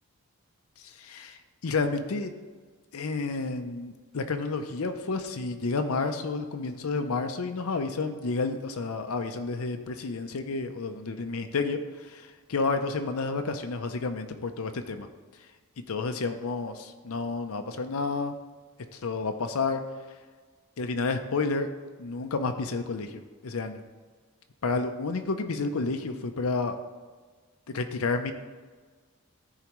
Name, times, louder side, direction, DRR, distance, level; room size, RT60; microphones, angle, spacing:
voice 1, 0.8-2.3 2.9-15.1 15.9-18.3 18.9-19.8 20.8-21.7 22.0-23.8 24.6-26.8 27.7-28.3, left 3 dB, 70° left, 7 dB, 0.6 m, -30 dB
13.5 x 4.8 x 3.1 m, 1.5 s
head